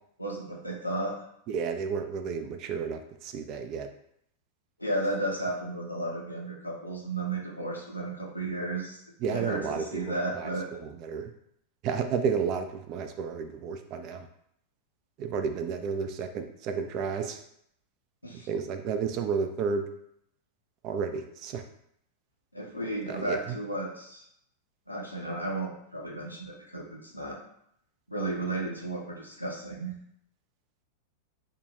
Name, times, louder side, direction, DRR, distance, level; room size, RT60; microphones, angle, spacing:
voice 1, 0.2-1.1 4.8-9.0 9.3-10.7 18.2-18.5 22.5-24.2 24.9-27.4 28.1-30.0, right 2 dB, 85° left, -2 dB, 0.6 m, -33 dB
voice 2, 1.5-3.9 9.2-9.8 10.3-10.5 10.8-11.3 11.8-14.3 15.2-17.4 18.5-19.9 20.8-21.6 23.1-23.4, right 6 dB, 40° right, 7 dB, 0.3 m, -31 dB
3.6 x 2.2 x 2.7 m, 0.72 s
figure-of-eight pair, 90°, 0 cm